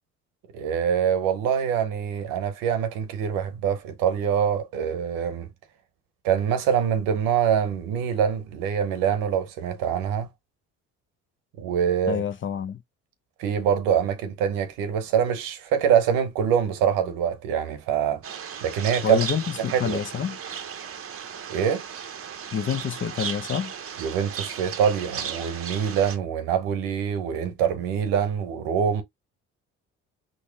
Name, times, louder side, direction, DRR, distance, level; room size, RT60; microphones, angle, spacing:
voice 1, 0.5-5.5 6.2-10.3 11.6-12.2 13.4-18.2 18.6-19.2 19.6-20.0 21.5-21.8 24.0-29.0, right 8 dB, 85° right, 0.9 m, -24 dB
voice 2, 12.1-12.8 19.0-20.4 22.5-23.7, left 7 dB, 35° left, 0.6 m, -27 dB
sound 1, 18.2-26.2, right 8 dB, 40° right, 0.7 m, -36 dB
4.0 x 2.1 x 3.3 m
supercardioid pair, 65°, 33 cm